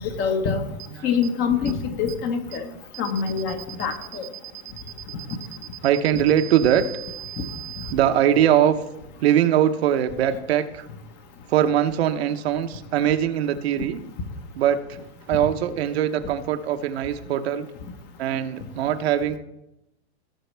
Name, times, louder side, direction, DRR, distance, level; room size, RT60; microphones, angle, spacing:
voice 1, 0.2-0.6 1.0-2.6 3.0-4.2, left 6 dB, 30° left, 6 dB, 1.3 m, -25 dB
sound 1, 0.8-0.9 1.2-1.3 1.7-1.8 2.1-2.2 2.5-2.6 2.9-7.9, right 14 dB, 20° right, 0.5 m, -38 dB
voice 2, 5.8-6.8 7.9-8.8 9.2-10.9 11.5-14.0 14.6-14.8 15.3-17.7 18.2-19.4, right 10 dB, 65° right, 8 dB, 1.0 m, -21 dB
17.0 x 6.2 x 3.4 m, 0.88 s
hypercardioid pair, 140°, 33 cm